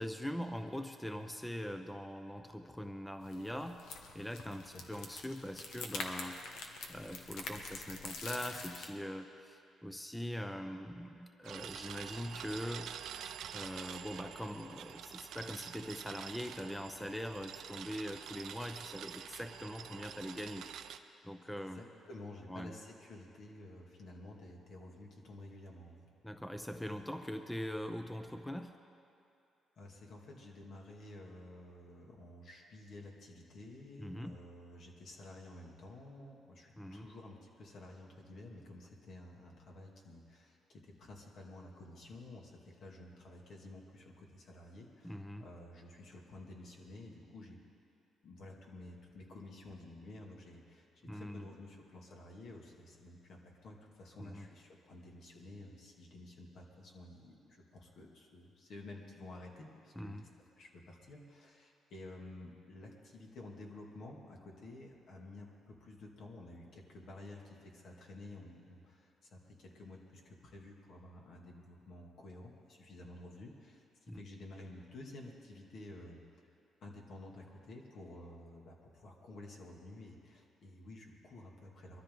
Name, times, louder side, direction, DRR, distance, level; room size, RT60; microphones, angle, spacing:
voice 1, 0.0-6.4 6.9-12.9 13.5-20.6 21.2-21.8 22.5-22.7 26.2-28.8 34.0-34.4 36.8-37.1 45.0-45.4 51.0-51.5 54.2-54.5 60.0-60.3 74.1-74.2, equal, 5° left, 7 dB, 0.7 m, -42 dB
sound 1, 3.2-8.9, left 4 dB, 80° left, 1.4 m, -45 dB
sound 2, 11.4-21.0, right 9 dB, 75° right, 0.6 m, -47 dB
voice 2, 21.4-26.0 29.8-47.6 48.2-50.8 51.1-60.3 60.6-73.8 74.1-76.2 76.8-82.0, left 2 dB, 65° left, -1 dB, 2.4 m, -52 dB
22.5 x 13.5 x 3.9 m, 2.7 s
cardioid pair, 90°, 0 cm